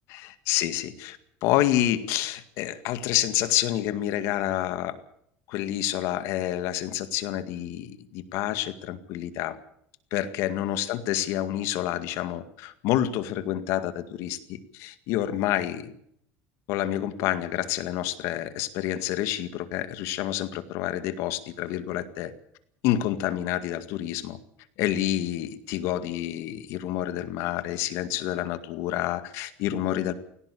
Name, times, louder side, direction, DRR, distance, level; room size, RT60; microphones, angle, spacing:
voice 1, 0.1-5.0 5.5-9.6 10.1-15.9 16.7-22.3 22.8-24.4 24.8-30.1, left 13 dB, 70° left, 12 dB, 2.0 m, -28 dB
18.0 x 17.5 x 8.5 m, 0.71 s
cardioid pair, 140°, 5 cm